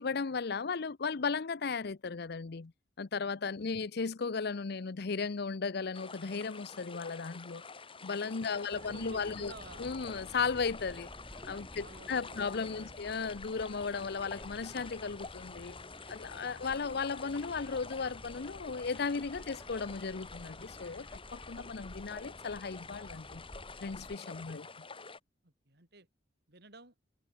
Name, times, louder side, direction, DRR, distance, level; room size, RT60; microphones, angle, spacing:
voice 1, 0.0-2.7 3.0-7.6 8.0-9.5 9.8-11.1 11.4-15.8 16.1-21.1 21.3-23.4 23.8-24.7, left 5 dB, 60° left, 0.7 m, -35 dB
sound 1, 5.9-25.2, left 4 dB, 30° left, 4.5 m, -49 dB
voice 2, 8.5-10.0 11.7-13.0 16.4-16.7 24.4-24.8 25.4-26.1 26.5-26.9, right 2 dB, 65° right, 7.1 m, -54 dB
sound 2, 8.7-24.2, equal, 15° left, 5.9 m, -52 dB
head